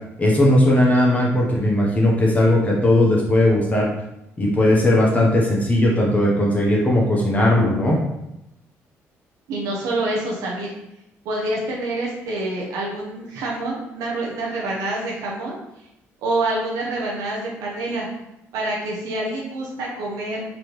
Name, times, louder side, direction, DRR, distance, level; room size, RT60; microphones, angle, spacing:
voice 1, 0.2-3.9 4.4-8.0, left 1 dB, 25° left, -3 dB, 1.1 m, -17 dB
voice 2, 9.5-10.7 11.2-15.6 16.2-18.1 18.5-20.4, right 2 dB, 80° right, -3 dB, 0.8 m, -26 dB
3.9 x 3.0 x 3.2 m, 0.88 s
supercardioid pair, 75°, 6 cm